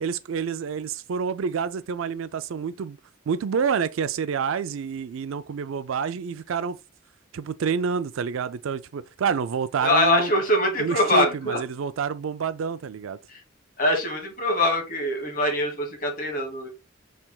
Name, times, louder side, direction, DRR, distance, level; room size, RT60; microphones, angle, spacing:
voice 1, 0.0-3.0 3.3-6.8 7.3-10.3 10.8-13.2, right 6 dB, 75° right, 0.4 m, -28 dB
voice 2, 9.8-11.6 13.3-13.4 13.8-16.7, left 1 dB, 40° left, 1.5 m, -23 dB
5.8 x 3.4 x 2.3 m
head